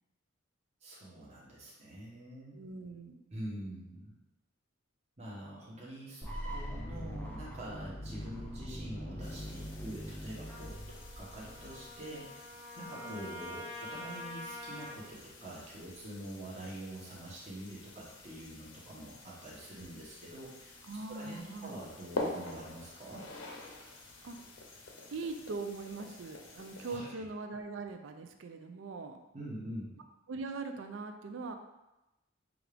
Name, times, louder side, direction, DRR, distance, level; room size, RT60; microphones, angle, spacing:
voice 1, 0.8-2.6 3.3-4.1 5.2-12.3 12.8-23.3 26.9-27.1 29.3-30.0, right 1 dB, 35° right, -6 dB, 1.0 m, -45 dB
voice 2, 2.5-3.4 13.0-13.3 20.9-21.8 24.2-24.4 25.1-29.2 30.3-31.5, right 3 dB, 70° right, 6 dB, 0.4 m, -41 dB
sound 1, 6.2-12.1, equal, 10° left, 0.4 m, -42 dB
sound 2, 9.2-27.0, left 2 dB, 75° left, 0.7 m, -47 dB
Trumpet, 10.5-15.0, left 1 dB, 5° right, 1.2 m, -46 dB
6.1 x 2.4 x 3.3 m, 0.97 s
head